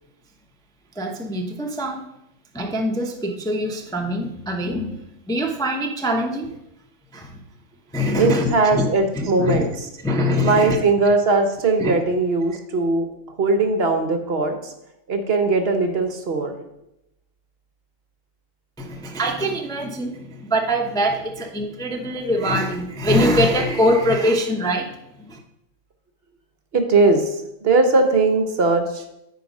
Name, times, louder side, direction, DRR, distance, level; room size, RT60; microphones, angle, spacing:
voice 1, 1.0-2.0 2.5-6.5 7.1-7.4 7.9-8.9 9.1-9.6 10.0-10.8 11.8-11.9 18.8-24.9 25.3-25.4, equal, 5° left, 2 dB, 0.5 m, -23 dB
voice 2, 8.2-9.7 10.4-13.1 13.4-14.7 15.1-16.5 26.7-29.0, right 3 dB, 55° right, 6 dB, 1.0 m, -19 dB
9.7 x 4.2 x 5.3 m, 0.85 s
omnidirectional pair, 1.4 m